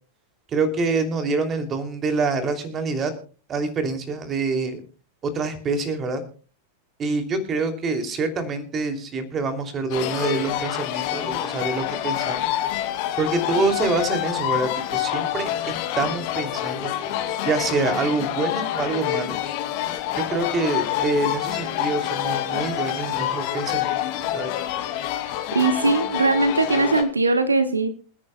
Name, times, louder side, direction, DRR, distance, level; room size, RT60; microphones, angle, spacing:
voice 1, 0.5-3.1 3.5-4.8 5.2-6.2 7.0-12.5 13.2-16.9 17.4-19.4 20.2-24.0 24.3-24.5, right 3 dB, 25° right, 7 dB, 2.8 m, -26 dB
sound 1, 9.9-27.0, left 12 dB, 45° left, 2.4 m, -27 dB
voice 2, 25.5-27.9, right 3 dB, 80° right, 11 dB, 1.1 m, -20 dB
27.5 x 10.0 x 2.3 m, 0.37 s
figure-of-eight pair, 90°, 0 cm